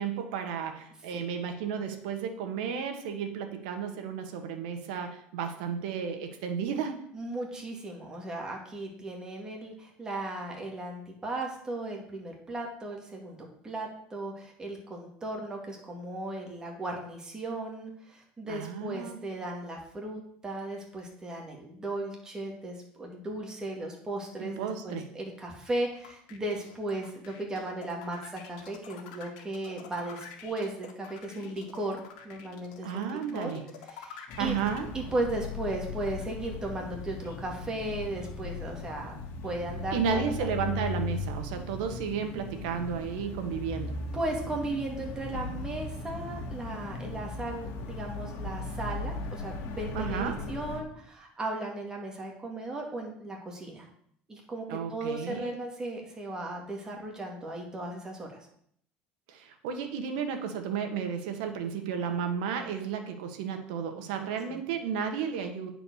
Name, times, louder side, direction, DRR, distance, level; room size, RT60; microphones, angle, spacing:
voice 1, 0.0-7.1 18.5-19.2 24.4-25.0 32.8-33.6 34.4-34.9 39.9-44.0 49.9-50.4 54.7-55.6 59.3-65.7, right 7 dB, 85° right, 6 dB, 1.5 m, -33 dB
voice 2, 7.1-33.6 33.9-34.6 34.9-39.2 39.4-40.5 44.1-53.9 54.3-58.5 64.5-64.6, right 2 dB, 15° right, -1 dB, 2.4 m, -36 dB
sound 1, 25.7-34.8, left 8 dB, 85° left, 1.9 m, -47 dB
sound 2, 34.3-50.8, left 3 dB, 55° left, 2.0 m, -38 dB
9.6 x 5.0 x 6.4 m, 0.66 s
cardioid pair, 130°, 5 cm